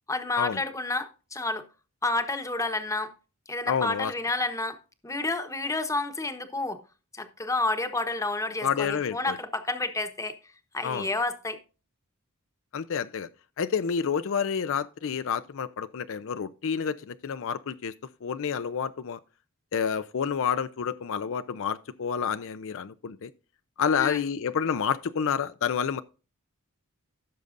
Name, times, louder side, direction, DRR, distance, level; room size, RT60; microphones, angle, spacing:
voice 1, 0.1-1.6 2.0-3.1 3.5-4.8 5.0-6.8 7.1-10.4 10.7-11.6 23.9-24.2, left 2 dB, 15° left, 1.0 m, -30 dB
voice 2, 3.7-4.1 8.6-9.4 10.8-11.1 12.7-13.3 13.6-17.9 18.2-19.2 19.7-23.3 23.8-26.0, left 7 dB, 60° left, 0.5 m, -29 dB
16.0 x 6.6 x 2.5 m
head